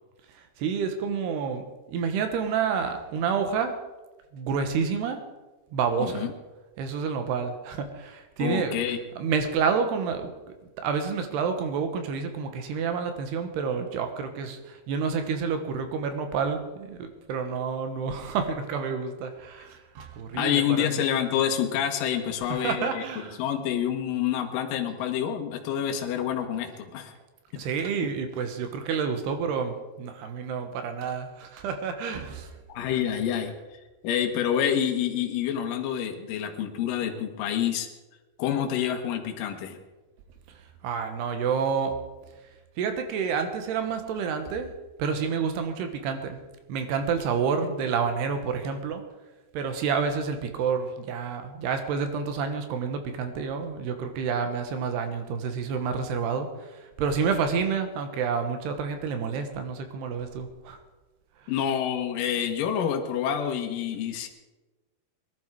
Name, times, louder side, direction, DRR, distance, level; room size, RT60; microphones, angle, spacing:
voice 1, 0.6-1.6 1.9-3.7 4.3-5.2 5.7-6.3 6.8-8.8 9.2-10.3 10.8-21.0 22.5-23.4 27.6-32.5 40.8-41.9 42.8-44.7 45.0-46.4 46.7-49.0 49.5-60.8, right 6 dB, 80° right, 7 dB, 3.4 m, -29 dB
voice 2, 6.0-6.3 8.4-9.0 20.3-23.0 23.4-27.1 32.7-33.5 34.0-37.9 38.4-39.8 61.5-64.3, left 9 dB, 65° left, 3 dB, 2.6 m, -27 dB
19.5 x 12.0 x 4.7 m, 1.2 s
omnidirectional pair, 4.7 m